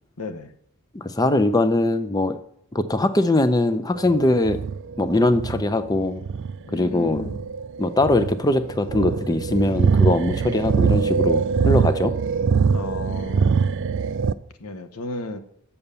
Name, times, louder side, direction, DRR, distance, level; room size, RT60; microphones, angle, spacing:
voice 1, 0.2-0.5 6.6-7.5 12.7-13.7 14.6-15.4, left 1 dB, 80° left, 8 dB, 1.0 m, -34 dB
voice 2, 0.9-2.4 2.7-4.6 5.0-6.2 6.7-7.3 7.8-12.1, left 2 dB, 15° left, 11 dB, 0.5 m, -21 dB
sound 1, 3.9-14.3, right 5 dB, 55° right, 0.4 m, -23 dB
7.1 x 7.0 x 6.8 m, 0.67 s
head